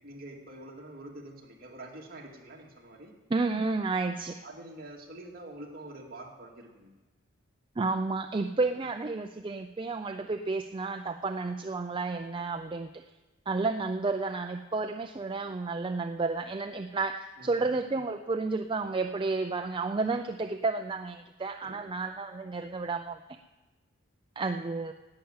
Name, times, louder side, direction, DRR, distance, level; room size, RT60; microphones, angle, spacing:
voice 1, 0.0-3.2 4.4-6.9 8.6-8.7 17.4-17.7 21.6-22.0, right 1 dB, 50° right, 0 dB, 2.1 m, -46 dB
voice 2, 3.3-4.4 7.8-12.9 13.5-23.2 24.4-24.9, right 3 dB, 25° right, 6 dB, 0.4 m, -31 dB
11.5 x 8.7 x 8.7 m, 1.1 s
head